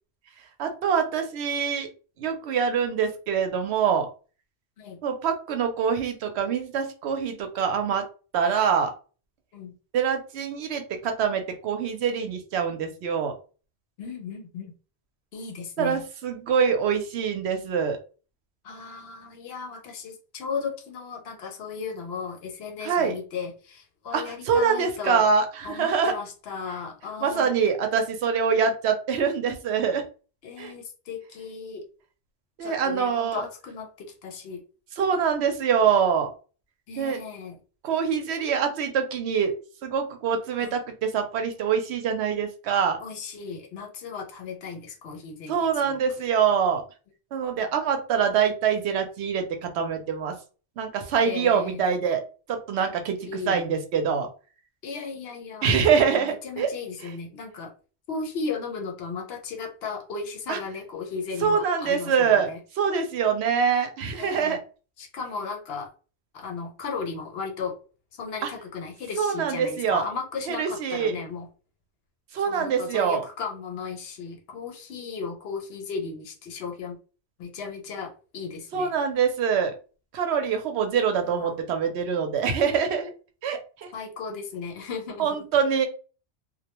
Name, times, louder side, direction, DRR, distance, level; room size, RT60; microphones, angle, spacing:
voice 1, 0.6-1.9 2.2-4.1 5.0-8.0 8.3-8.9 9.9-13.3 15.8-18.0 22.8-23.1 24.1-26.1 27.2-30.0 30.6-30.7 32.6-33.4 35.0-36.3 37.0-37.2 37.8-39.5 39.8-43.0 45.5-46.8 47.3-50.4 50.8-52.2 52.5-53.2 53.5-54.3 55.6-56.7 60.5-60.6 61.4-62.5 62.8-64.6 68.4-68.5 69.2-70.0 70.5-71.2 72.3-73.2 78.7-79.7 80.1-83.1 83.4-83.9 85.2-85.9, right 6 dB, 75° right, 6 dB, 0.8 m, -24 dB
voice 2, 14.0-14.7 15.3-16.0 18.6-25.3 25.6-27.5 30.4-31.8 32.6-34.6 36.9-37.6 40.6-40.8 43.0-46.0 47.5-47.6 51.2-52.0 53.2-53.6 54.8-55.7 56.1-57.7 58.1-62.6 64.2-64.6 65.0-65.9 66.3-67.8 68.1-71.5 72.5-77.0 77.4-78.9 81.3-81.6 83.9-85.3, left 5 dB, 70° left, 3 dB, 0.8 m, -35 dB
2.2 x 2.1 x 2.8 m, 0.36 s
omnidirectional pair, 1.1 m